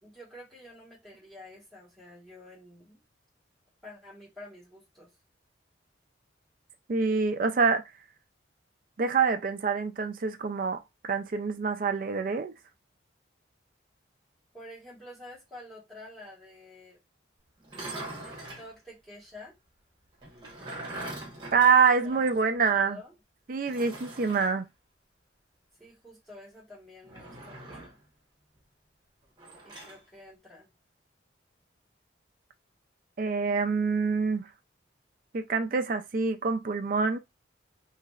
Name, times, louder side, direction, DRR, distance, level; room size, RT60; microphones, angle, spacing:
voice 1, 0.0-3.0 3.8-5.1 14.5-17.0 18.2-19.5 22.0-22.2 22.7-23.1 25.8-28.0 29.6-30.7, left 1 dB, ahead, 1.6 m, -49 dB
voice 2, 6.9-7.8 9.0-12.5 21.5-23.0 23.5-24.7 33.2-34.5 35.3-37.2, right 5 dB, 45° right, 0.4 m, -26 dB
sound 1, 17.6-18.7 20.2-22.5 22.8-22.9 23.7-24.5 27.0-28.0 29.4-30.0, right 2 dB, 25° right, 1.1 m, -42 dB
3.2 x 2.8 x 2.4 m
head